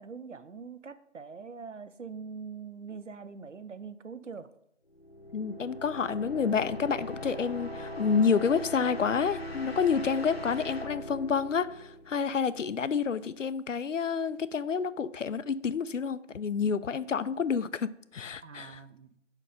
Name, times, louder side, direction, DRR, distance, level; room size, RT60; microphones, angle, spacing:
voice 1, 0.0-4.5 18.4-19.2, right 5 dB, 70° right, 0.6 m, -43 dB
sound 1, 4.9-12.6, left 1 dB, 55° left, 0.8 m, -40 dB
voice 2, 5.3-18.8, left 6 dB, 80° left, 0.5 m, -29 dB
5.3 x 4.5 x 5.1 m
figure-of-eight pair, 170°, 38 cm